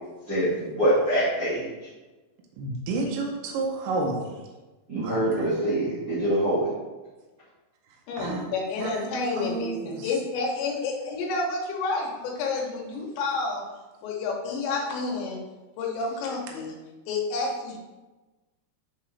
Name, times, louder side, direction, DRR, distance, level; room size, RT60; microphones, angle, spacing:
voice 1, 0.3-1.6 4.9-6.7, right 1 dB, 55° right, -11 dB, 1.0 m, -24 dB
voice 2, 2.6-4.3 5.0-5.6 8.2-8.5 8.8-9.1 9.4-10.1, right 3 dB, 80° right, -1 dB, 2.2 m, -31 dB
voice 3, 8.1-13.6 14.0-15.4 15.8-16.7 17.1-17.8, left 3 dB, 80° left, -1 dB, 3.3 m, -29 dB
9.2 x 3.9 x 3.2 m, 1.2 s
omnidirectional pair, 5.1 m